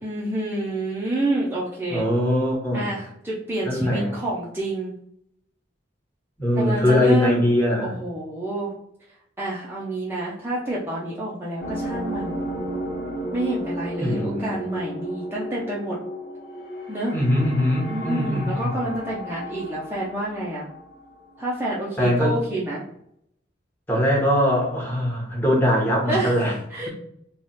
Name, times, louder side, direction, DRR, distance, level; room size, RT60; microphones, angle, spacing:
voice 1, 0.0-2.0 2.7-4.9 6.6-7.4 7.8-8.7 9.4-12.4 13.3-16.0 16.9-17.2 17.9-20.7 21.4-22.8 26.1-26.3 26.7-26.9, right 1 dB, 15° right, -6 dB, 0.6 m, -28 dB
voice 2, 1.9-2.9 3.6-4.1 6.4-7.9 14.0-14.5 17.1-18.7 22.0-22.3 23.9-26.6, left 1 dB, 10° left, -4 dB, 1.1 m, -21 dB
sound 1, 11.6-21.4, equal, 60° left, 1.0 m, -33 dB
3.3 x 2.3 x 4.1 m, 0.70 s
head